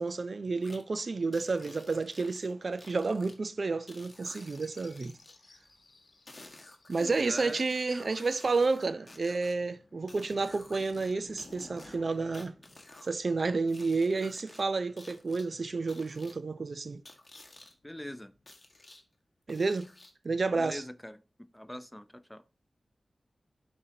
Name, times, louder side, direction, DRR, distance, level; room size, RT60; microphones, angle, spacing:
voice 1, 0.0-5.2 6.9-12.5 13.0-17.0 19.5-19.9 20.2-20.8, right 3 dB, 55° right, 0.4 m, -30 dB
sound 1, 0.6-0.8 1.3-3.3 3.9-5.4 6.3-9.5 10.1-11.1 11.4-13.1 13.7-14.6 15.0-15.4 15.9-16.3 17.0-17.7 18.5-19.0 19.5-20.2, left 2 dB, 30° left, 1.4 m, -53 dB
sound 2, 4.1-13.9 15.6-16.5 17.4-18.6, left 2 dB, 55° left, 1.2 m, -58 dB
voice 2, 7.0-7.6 17.8-18.3 20.5-21.2 21.5-22.4, left 1 dB, 10° left, 0.4 m, -42 dB
11.5 x 4.3 x 2.7 m
wide cardioid pair, 95°, 0 cm